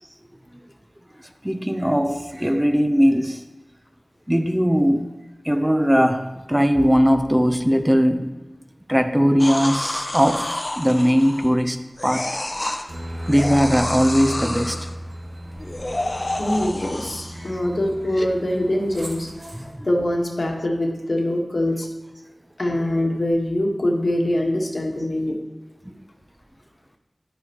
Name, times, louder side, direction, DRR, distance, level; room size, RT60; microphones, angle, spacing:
voice 1, 1.4-3.4 4.3-5.1 5.4-8.3 8.9-12.3 12.7-12.9 13.3-14.8 17.4-17.6 19.5-19.9, equal, 10° right, 0.6 m, -19 dB
sound 1, 9.4-11.6 12.0-12.8 13.3-14.9 15.6-17.5 18.1-18.3, left 1 dB, 40° left, 0.7 m, -29 dB
Aircraft, 12.9-19.7, equal, 85° right, 1.8 m, -35 dB
voice 2, 16.4-19.3 19.8-21.9 22.6-25.4, left 1 dB, 65° left, 1.4 m, -23 dB
10.5 x 8.6 x 3.0 m
wide cardioid pair, 55°, 0 cm